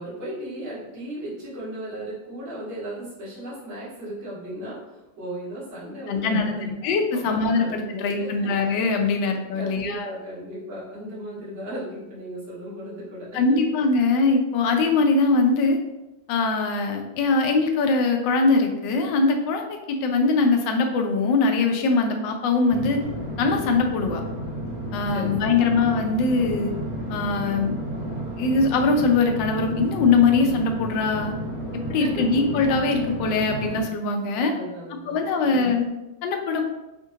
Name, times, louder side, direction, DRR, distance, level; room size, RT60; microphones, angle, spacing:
voice 1, 0.0-4.8 5.2-8.5 9.0-9.1 9.5-13.6 25.1-25.7 32.0-32.2 34.3-35.7, right 1 dB, 75° right, -11 dB, 2.4 m, -36 dB
voice 2, 6.1-10.1 13.3-15.8 16.3-23.0 23.4-24.2 24.9-26.7 27.1-27.7 28.4-31.3 31.9-34.5 35.1-35.8 36.2-36.6, left 3 dB, 75° left, 3 dB, 1.2 m, -22 dB
sound 1, 22.7-33.8, equal, 35° right, 1.8 m, -32 dB
5.1 x 2.5 x 2.7 m, 0.99 s
omnidirectional pair, 2.2 m